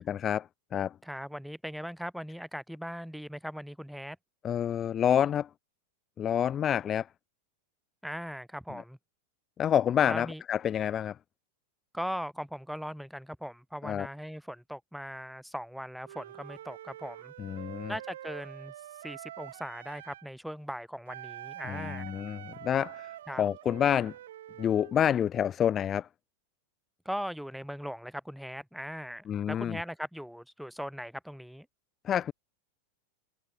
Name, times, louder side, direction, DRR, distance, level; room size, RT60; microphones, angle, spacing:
voice 1, 0.0-1.0 4.4-5.5 6.2-7.1 8.7-8.8 9.6-11.2 13.8-14.1 17.4-17.9 21.6-24.1 24.6-26.1 29.3-29.8 32.0-32.3, left 9 dB, 25° left, 0.4 m, -28 dB
voice 2, 1.0-4.2 8.0-9.0 10.1-10.4 11.9-17.3 17.9-18.7 19.0-22.1 23.3-23.4 27.0-31.7, equal, ahead, 2.4 m, -39 dB
Wind instrument woodwind instrument, 16.0-20.3 21.1-25.0, right 12 dB, 60° right, 0.8 m, -46 dB
figure-of-eight pair, 90°, 0 cm